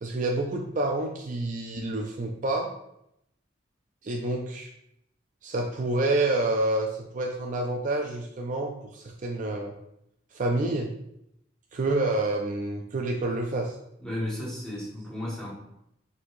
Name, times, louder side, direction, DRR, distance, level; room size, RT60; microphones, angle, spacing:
voice 1, 0.0-2.7 4.0-4.7 5.4-9.7 10.3-10.9 11.7-13.8, right 2 dB, 45° right, 2 dB, 0.4 m, -28 dB
voice 2, 14.0-15.5, left 1 dB, 5° left, -7 dB, 1.5 m, -33 dB
4.5 x 3.9 x 2.6 m, 0.79 s
head